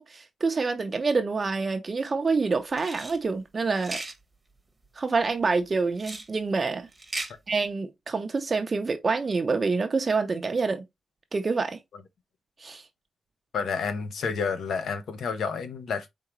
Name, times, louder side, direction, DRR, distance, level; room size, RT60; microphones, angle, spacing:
voice 1, 0.0-4.0 5.0-6.9 7.5-10.8 11.3-11.8 12.6-12.8, right 4 dB, 35° right, 0.6 m, -27 dB
sound 1, 2.7-3.2 3.8-4.2 6.0-6.3 6.9-7.3, right 2 dB, 10° right, 1.2 m, -36 dB
voice 2, 13.5-16.1, left 5 dB, 80° left, 0.8 m, -30 dB
4.7 x 3.7 x 3.0 m
cardioid pair, 110°, 0 cm